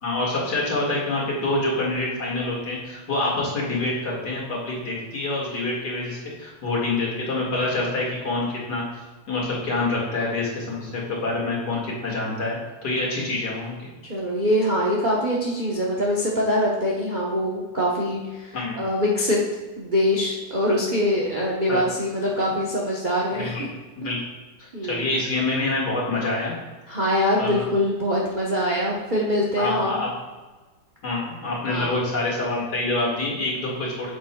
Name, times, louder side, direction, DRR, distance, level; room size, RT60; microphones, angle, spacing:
voice 1, 0.0-8.8 9.3-13.9 18.5-18.8 21.7-21.8 23.4-23.6 24.0-24.2 24.8-26.5 27.4-27.6 29.6-30.1 31.0-34.1, left 2 dB, 50° left, -4 dB, 2.5 m, -26 dB
voice 2, 14.1-19.4 19.8-23.5 24.0-24.1 24.7-25.1 26.9-30.0 31.7-31.9, left 1 dB, 35° right, -4 dB, 0.8 m, -24 dB
8.7 x 7.6 x 2.3 m, 1.3 s
omnidirectional pair, 2.2 m